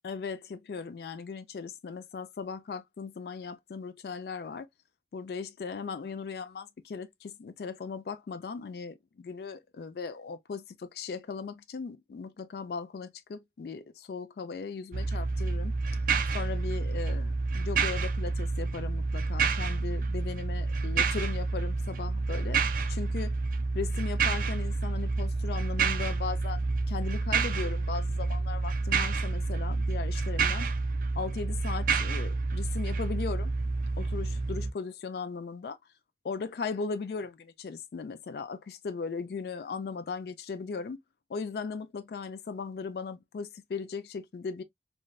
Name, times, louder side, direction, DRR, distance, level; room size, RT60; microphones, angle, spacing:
voice 1, 0.0-4.7 5.1-15.7 16.3-22.6 22.9-23.3 23.7-30.7 31.2-33.5 34.0-35.8 36.2-41.0 41.3-44.6, left 5 dB, 60° left, 0.3 m, -38 dB
sound 1, 14.9-34.7, right 4 dB, 50° right, 0.4 m, -29 dB
3.2 x 2.5 x 2.2 m
head